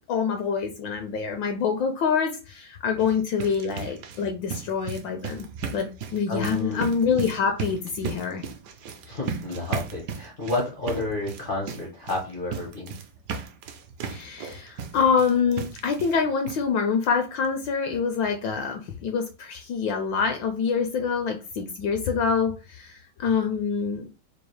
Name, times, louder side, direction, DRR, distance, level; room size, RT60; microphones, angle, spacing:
voice 1, 0.1-8.4 14.0-24.1, left 6 dB, 75° left, 6 dB, 1.1 m, -26 dB
sound 1, 2.9-16.2 16.5-16.6 17.0-17.1 17.4-17.5, right 6 dB, 70° right, 1.0 m, -36 dB
voice 2, 6.3-6.8 9.1-13.0, left 2 dB, 55° left, -3 dB, 0.5 m, -30 dB
4.5 x 2.4 x 3.1 m, 0.32 s
omnidirectional pair, 2.4 m